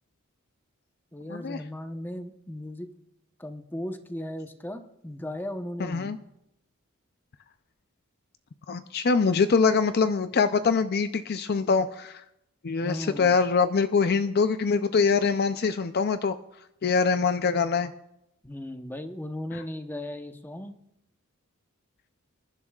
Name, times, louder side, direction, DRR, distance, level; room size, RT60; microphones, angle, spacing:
voice 1, 1.1-2.9 3.4-6.2 12.8-13.3 18.4-20.8, left 1 dB, 10° left, 6 dB, 0.9 m, -36 dB
voice 2, 5.8-6.2 8.7-12.2 12.6-16.4 16.8-17.9 19.5-19.6, left 5 dB, 50° left, 10 dB, 0.5 m, -24 dB
26.5 x 11.0 x 2.4 m, 0.83 s
head